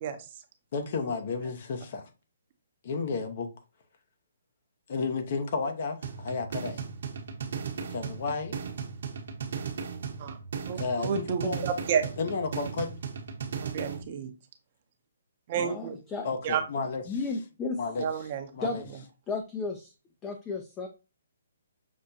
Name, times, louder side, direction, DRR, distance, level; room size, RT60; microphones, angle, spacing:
voice 1, 0.7-2.0 2.8-3.5 4.9-6.8 7.9-8.6 10.7-11.7 12.2-12.9 16.2-17.2 17.8-18.1 18.5-18.8, left 4 dB, 50° left, 0.9 m, -32 dB
sound 1, 6.0-14.0, right 6 dB, 65° right, 0.9 m, -36 dB
voice 2, 10.7-12.1 13.6-14.3 15.5-16.0 16.4-16.6 18.0-18.5, right 7 dB, 40° right, 0.6 m, -30 dB
voice 3, 15.6-16.3 17.1-17.8 18.6-18.8 19.3-19.9 20.2-20.9, left 4 dB, 15° left, 0.5 m, -33 dB
6.2 x 2.2 x 2.7 m
hypercardioid pair, 145°, 0 cm